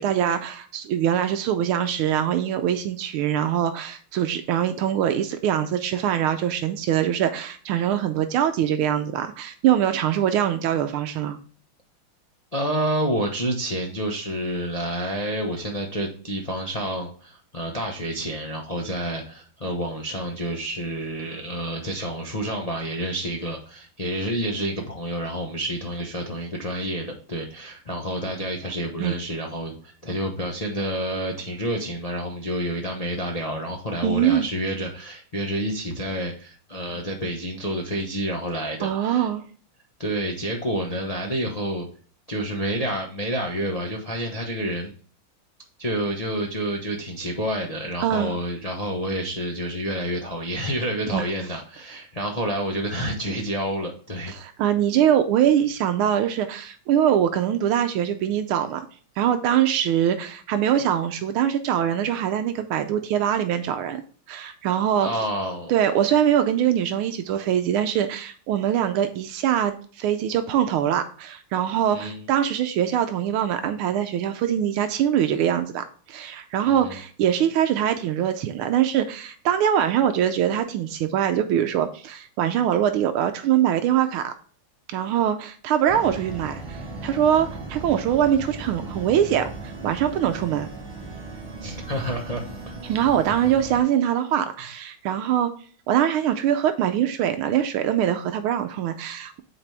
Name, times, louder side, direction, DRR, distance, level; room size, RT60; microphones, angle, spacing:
voice 1, 0.0-11.4 29.0-29.2 34.0-34.5 38.8-39.4 48.0-48.3 51.1-51.3 54.3-58.9 59.2-64.0 64.3-65.1 65.7-84.3 84.9-90.7 92.8-95.5 95.9-99.4, right 10 dB, 85° right, 8 dB, 1.5 m, -23 dB
voice 2, 12.5-39.3 40.0-41.9 42.3-44.9 45.8-54.3 65.0-65.7 71.9-72.3 76.6-77.0 91.6-92.4, equal, 35° left, 0 dB, 0.6 m, -29 dB
sound 1, 85.9-93.8, right 3 dB, 15° right, 3.7 m, -37 dB
8.7 x 4.1 x 3.3 m, 0.43 s
omnidirectional pair, 2.4 m